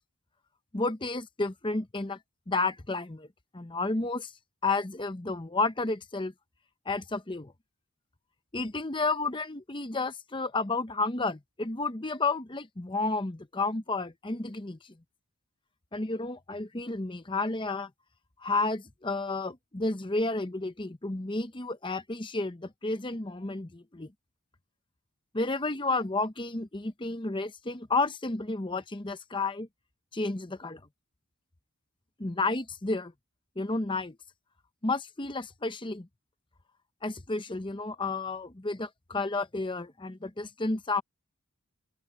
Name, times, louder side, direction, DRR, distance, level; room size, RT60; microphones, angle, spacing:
voice 1, 0.7-2.2 2.5-3.3 3.5-4.3 4.6-6.3 6.9-7.5 8.5-14.8 15.9-17.9 18.4-24.1 25.3-29.7 30.1-30.8 32.2-33.1 33.6-34.2 34.8-36.1 37.0-41.0, left 3 dB, 20° left, 0.8 m, -31 dB
head